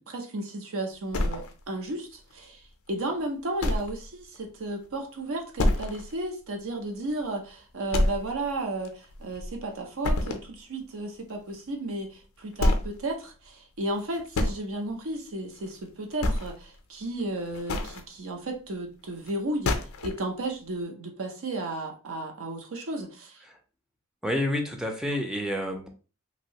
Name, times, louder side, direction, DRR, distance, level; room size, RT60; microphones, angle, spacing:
voice 1, 0.1-23.4, right 2 dB, 65° right, 3 dB, 0.6 m, -34 dB
sound 1, 1.1-1.9 2.3-2.4 2.9-3.0 3.6-4.1 4.3-4.4 4.8-4.9 5.6-6.1 6.5-6.6 7.1-7.2 7.9-8.5 8.8-9.6 10.0-10.5 11.9-12.0 12.5-13.0 13.9-14.6 15.6-15.8 16.1-16.7 17.4-18.0 19.3-19.4 19.6-20.2, left 1 dB, 65° left, 0.5 m, -27 dB
voice 2, 24.2-25.9, left 1 dB, 5° right, 3 dB, 0.4 m, -29 dB
2.9 x 2.6 x 2.8 m, 0.36 s
head